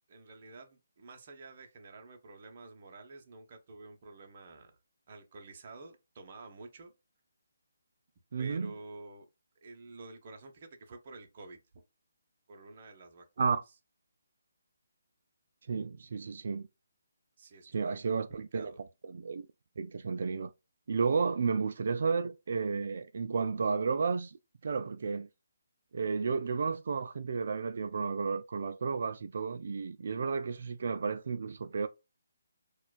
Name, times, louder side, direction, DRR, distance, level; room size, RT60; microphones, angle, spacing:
voice 1, 0.1-4.7 5.1-6.9 8.4-9.3 9.6-11.6 12.5-13.6 17.4-18.8, right 3 dB, 40° right, 0.8 m, -50 dB
voice 2, 8.3-8.7 13.4-13.6 15.7-16.7 17.7-18.7 19.0-19.5 19.8-20.5 20.9-24.4 24.6-25.3 25.9-31.9, right 5 dB, 55° right, 0.3 m, -32 dB
4.3 x 2.3 x 2.4 m
hypercardioid pair, 160°, 0 cm